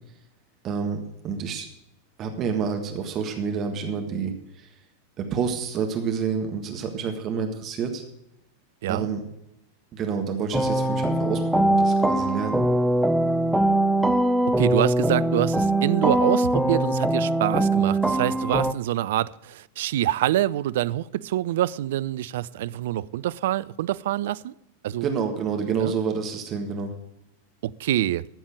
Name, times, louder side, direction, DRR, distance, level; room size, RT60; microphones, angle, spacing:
voice 1, 0.6-1.0 1.2-1.7 2.2-4.7 5.2-8.0 8.9-9.2 9.9-12.6 25.0-26.9, right 6 dB, 30° right, 1.6 m, -28 dB
sound 1, 10.5-18.7, right 1 dB, 5° right, 0.7 m, -22 dB
voice 2, 14.6-24.5 24.8-25.1 25.8-25.9 27.6-28.2, right 13 dB, 55° right, 0.4 m, -26 dB
13.5 x 7.2 x 6.3 m
figure-of-eight pair, 90°, 0 cm